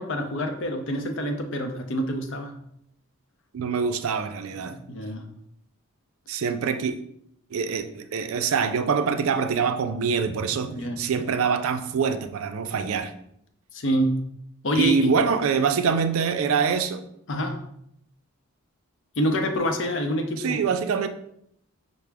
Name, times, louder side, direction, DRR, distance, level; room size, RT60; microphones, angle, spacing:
voice 1, 0.0-2.6 4.6-5.3 10.8-11.0 13.7-14.2 14.6-15.1 17.3-17.6 19.2-20.6, equal, 55° left, 5 dB, 0.5 m, -27 dB
voice 2, 3.5-4.8 6.3-6.9 7.5-13.1 14.8-17.0 20.4-21.1, right 6 dB, 75° right, 8 dB, 0.4 m, -25 dB
5.8 x 2.1 x 3.4 m, 0.72 s
head